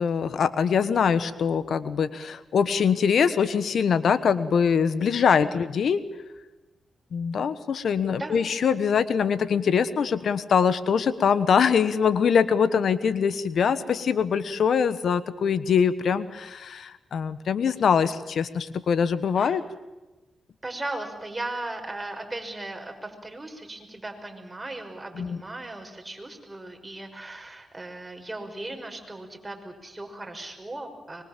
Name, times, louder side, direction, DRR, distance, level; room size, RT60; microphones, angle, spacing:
voice 1, 0.0-6.0 7.1-19.6 25.2-25.4, left 6 dB, 70° left, 14 dB, 1.2 m, -23 dB
voice 2, 8.1-8.4 19.4-19.6 20.6-31.2, right 2 dB, 20° right, 3 dB, 5.8 m, -37 dB
25.0 x 22.5 x 7.5 m, 1.1 s
supercardioid pair, 55°, 0 cm